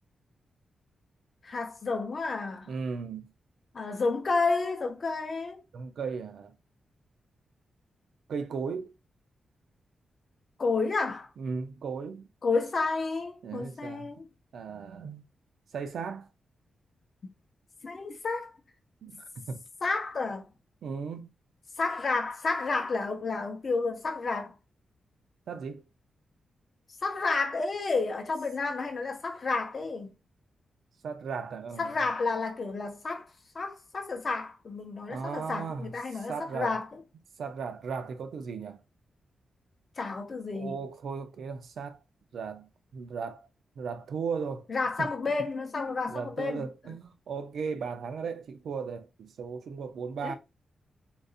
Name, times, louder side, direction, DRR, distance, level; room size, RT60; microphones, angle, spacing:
voice 1, 1.4-2.7 3.7-5.6 10.6-11.3 12.4-14.3 17.8-18.5 19.8-20.5 21.8-24.5 27.0-30.1 31.8-33.3 33.5-36.9 40.0-40.8 44.7-46.7 50.2-50.4, left 3 dB, 35° left, 0.8 m, -31 dB
voice 2, 2.7-3.3 5.7-6.5 8.3-8.9 11.4-12.3 13.4-14.1 14.5-15.3 15.7-16.3 19.0-19.6 20.8-21.3 25.5-25.8 31.0-31.9 35.1-36.8 37.4-38.8 40.5-42.0 42.3-43.5 43.8-44.7 46.1-50.4, right 5 dB, 70° right, 0.5 m, -36 dB
3.9 x 2.5 x 2.4 m
wide cardioid pair, 160°, 0 cm